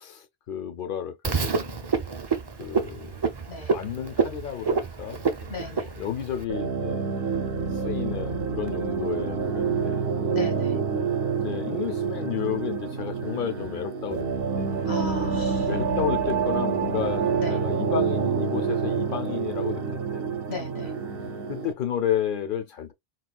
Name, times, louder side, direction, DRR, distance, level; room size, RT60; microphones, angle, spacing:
voice 1, 0.0-1.9 2.6-3.1 3.7-7.1 7.8-10.1 11.4-14.3 14.6-14.7 15.7-20.3 21.5-22.9, left 9 dB, 60° left, 0.7 m, -32 dB
Frog, 1.2-6.4, right 5 dB, 30° right, 0.5 m, -28 dB
voice 2, 5.5-5.9 10.3-10.8 14.9-15.7 17.4-17.6 20.5-20.9, left 4 dB, 80° left, 1.5 m, -36 dB
sound 1, 6.5-21.7, right 6 dB, 70° right, 0.8 m, -27 dB
4.1 x 2.3 x 2.2 m
omnidirectional pair, 1.1 m